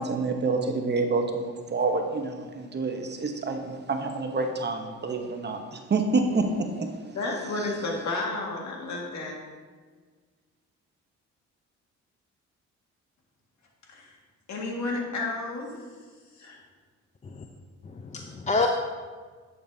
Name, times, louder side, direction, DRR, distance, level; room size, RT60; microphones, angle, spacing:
voice 1, 0.0-6.9, right 3 dB, 35° right, 4 dB, 0.9 m, -28 dB
voice 2, 7.1-9.4 13.9-14.1 14.5-15.8 16.4-16.6, left 2 dB, 65° left, -1 dB, 1.9 m, -32 dB
voice 3, 17.8-18.7, left 3 dB, 25° left, 3 dB, 0.5 m, -28 dB
10.0 x 6.8 x 2.7 m, 1.5 s
cardioid pair, 90°, 30 cm